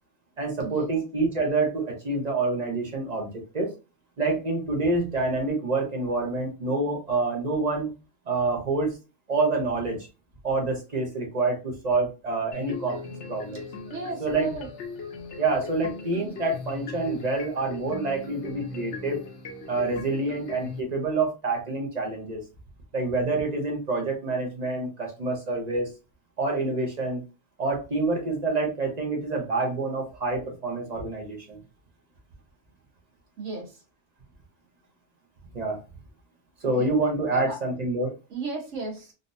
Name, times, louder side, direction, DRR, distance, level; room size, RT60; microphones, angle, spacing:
voice 1, 0.4-3.7 4.2-7.9 8.3-8.9 9.3-10.0 10.4-13.0 13.3-13.6 13.9-14.5 15.4-19.2 19.7-22.4 22.9-25.9 26.4-27.2 27.6-31.6 35.5-35.8 36.6-38.1, right 3 dB, 40° right, 2 dB, 0.9 m, -27 dB
sound 1, 12.5-20.8, left 4 dB, 70° left, 1.1 m, -39 dB
voice 2, 13.9-14.7 33.4-33.7 36.8-36.9 37.3-37.6 38.3-39.1, right 3 dB, 85° right, 0 dB, 1.5 m, -34 dB
3.9 x 2.6 x 2.6 m, 0.30 s
omnidirectional pair, 1.2 m